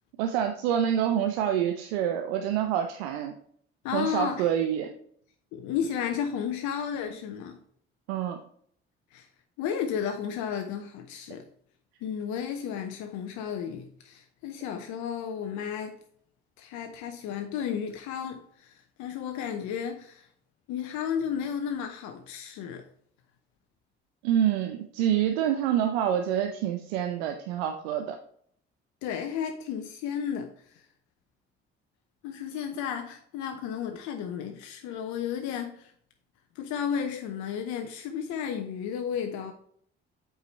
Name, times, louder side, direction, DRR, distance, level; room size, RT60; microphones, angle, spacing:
voice 1, 0.2-3.3 3.9-4.9 8.1-8.4 24.2-28.2, right 10 dB, 85° right, 0.7 m, -27 dB
voice 2, 3.8-4.5 5.5-7.6 9.1-9.3 9.6-11.5 12.0-16.0 16.6-20.3 20.7-22.8 29.0-30.5 32.2-35.9 36.6-39.5, left 8 dB, 70° left, 0.8 m, -33 dB
8.1 x 4.9 x 4.1 m
hypercardioid pair, 50°, 31 cm